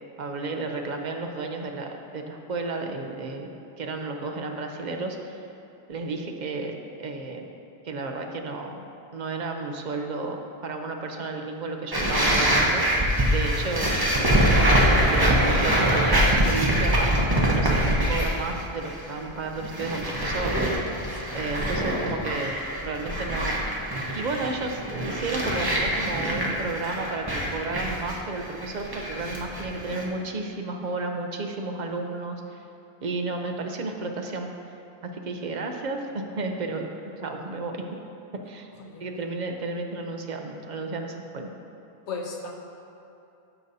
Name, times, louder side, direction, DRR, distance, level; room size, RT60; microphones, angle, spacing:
voice 1, 0.2-3.5 3.8-5.4 5.9-6.7 7.0-7.4 7.8-8.8 9.1-12.8 13.3-14.3 14.8-20.5 21.3-23.7 24.1-32.6 33.0-34.5 35.1-36.9 37.2-37.8 38.3-38.7 39.0-41.5, right 3 dB, 50° right, 3 dB, 0.7 m, -32 dB
sound 1, 11.9-18.5 18.8-19.2 19.6-30.0, right 1 dB, 20° right, 0.9 m, -24 dB
voice 2, 20.9-21.5 38.8-39.1 42.1-42.5, left 4 dB, 85° left, 1 dB, 1.2 m, -37 dB
14.0 x 5.3 x 2.7 m, 2.8 s
omnidirectional pair, 1.1 m